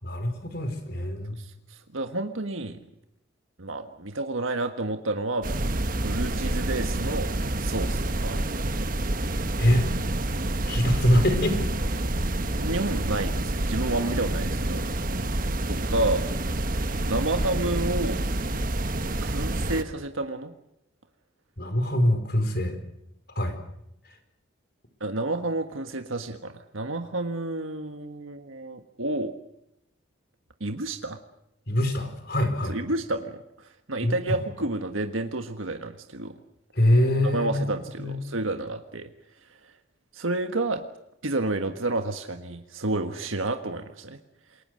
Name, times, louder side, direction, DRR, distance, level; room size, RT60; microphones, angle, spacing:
voice 1, 0.0-1.4 9.6-9.9 10.7-11.7 21.6-22.8 23.4-23.5 31.7-32.8 34.0-34.1 36.7-37.6 38.0-38.2, left 1 dB, 50° left, 8 dB, 4.5 m, -23 dB
voice 2, 1.4-2.8 3.6-5.5 6.0-7.3 7.6-8.5 12.6-14.8 15.7-16.2 17.1-18.2 19.2-20.5 25.0-29.3 30.6-31.2 32.6-36.3 37.2-39.1 39.6-39.7 40.1-40.8 41.2-44.2, right 2 dB, 90° right, 7 dB, 1.6 m, -30 dB
sound 1, 5.4-19.8, right 1 dB, 45° right, 1.3 m, -28 dB
28.0 x 22.0 x 6.5 m, 0.83 s
head